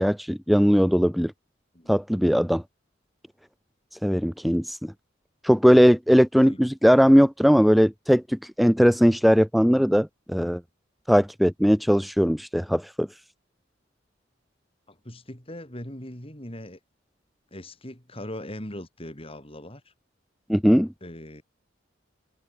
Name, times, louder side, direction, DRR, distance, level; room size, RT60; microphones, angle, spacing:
voice 1, 0.0-1.3 1.9-2.6 4.0-4.8 5.4-10.6 11.1-13.1 20.5-20.9, equal, ahead, 0.6 m, -19 dB
voice 2, 14.9-16.8 17.5-19.9 21.0-21.4, left 1 dB, 30° left, 5.1 m, -40 dB
head